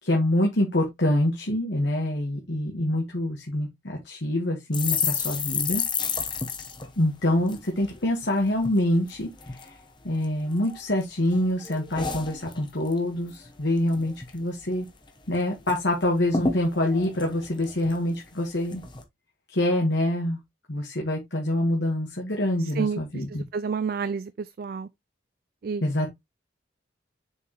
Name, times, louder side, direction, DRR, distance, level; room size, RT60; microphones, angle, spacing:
voice 1, 0.0-5.8 7.0-9.8 10.0-14.9 15.3-18.8 19.5-20.4 20.7-23.4 25.8-26.1, left 1 dB, 65° left, 1.5 m, -26 dB
sound 1, 4.7-8.3 8.6-8.8 9.1-9.7 10.2-11.0 11.3-13.0 13.3-13.5 13.8-14.4 14.7-14.8 15.1-15.8 16.0-16.1 16.3-18.2 18.7-19.0, left 5 dB, 25° left, 1.0 m, -31 dB
voice 2, 23.3-24.3 24.6-24.9 25.6-25.8, right 5 dB, 50° right, 0.3 m, -29 dB
6.9 x 4.7 x 3.1 m
head